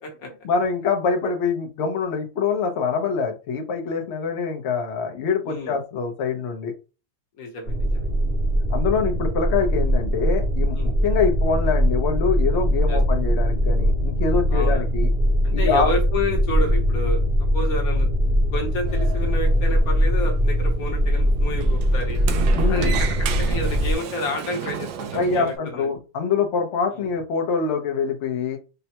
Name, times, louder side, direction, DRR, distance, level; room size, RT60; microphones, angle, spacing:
voice 1, 0.2-6.7 8.7-10.8 11.0-15.1 15.5-15.9 22.5-23.0 25.1-28.6, left 5 dB, 70° left, 3 dB, 0.6 m, -24 dB
voice 2, 5.4-5.7 7.4-8.1 10.7-10.9 12.9-13.0 14.5-14.8 15.4-17.2 17.5-18.1 18.5-22.2 22.7-25.9, left 2 dB, 55° left, 1 dB, 1.3 m, -30 dB
sound 1, 7.7-23.9, equal, 35° right, 1.0 m, -21 dB
Sliding door, 18.5-25.6, right 9 dB, 75° right, 1.3 m, -33 dB
5.3 x 2.2 x 2.8 m, 0.32 s
omnidirectional pair, 2.2 m